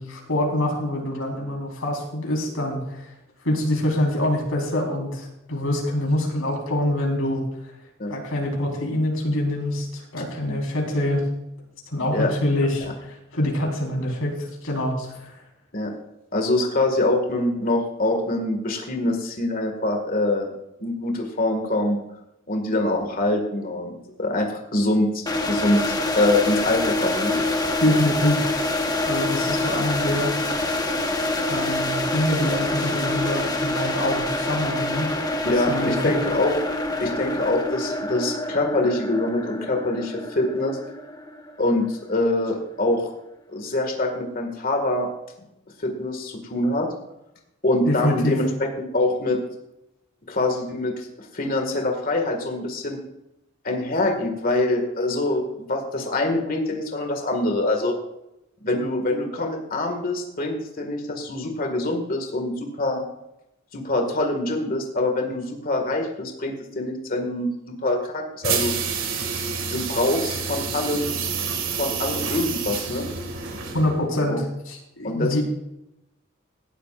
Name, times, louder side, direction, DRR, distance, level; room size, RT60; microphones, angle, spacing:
voice 1, 0.0-3.1 3.4-7.4 8.1-11.2 11.9-14.3 14.6-15.4 27.8-28.5 29.0-30.3 31.5-35.1 35.7-36.1 47.9-48.4 73.7-75.4, left 1 dB, 85° left, 0 dB, 4.2 m, -25 dB
voice 2, 16.3-20.5 20.8-22.0 22.5-23.9 24.2-27.4 29.7-29.8 35.4-36.6 37.0-40.8 41.6-43.1 43.5-45.1 45.8-46.9 47.6-48.5 48.8-49.4 50.3-53.0 53.6-58.0 58.6-63.0 63.7-68.7 69.7-71.2 71.7-73.1 74.3-74.4 75.0-75.4, left 2 dB, 45° left, 3 dB, 2.0 m, -24 dB
sound 1, 25.3-42.1, left 2 dB, 20° left, 1.2 m, -26 dB
sound 2, 68.4-74.1, right 6 dB, 70° right, 2.0 m, -28 dB
18.0 x 12.5 x 2.5 m, 0.86 s
head